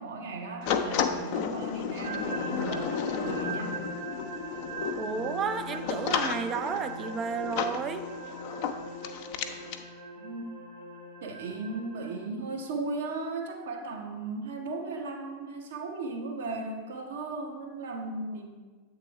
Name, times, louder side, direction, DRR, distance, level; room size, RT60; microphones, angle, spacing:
voice 1, 0.0-3.9 10.2-10.5 11.2-18.5, right 3 dB, 60° right, 1 dB, 1.0 m, -36 dB
sound 1, 0.6-9.8, left 7 dB, 45° left, 0.4 m, -33 dB
sound 2, 2.0-12.3, right 1 dB, 80° right, 1.7 m, -40 dB
voice 2, 5.0-8.0, right 6 dB, 25° right, 9 dB, 0.4 m, -32 dB
7.5 x 3.5 x 4.6 m, 1.4 s
figure-of-eight pair, 90°, 0 cm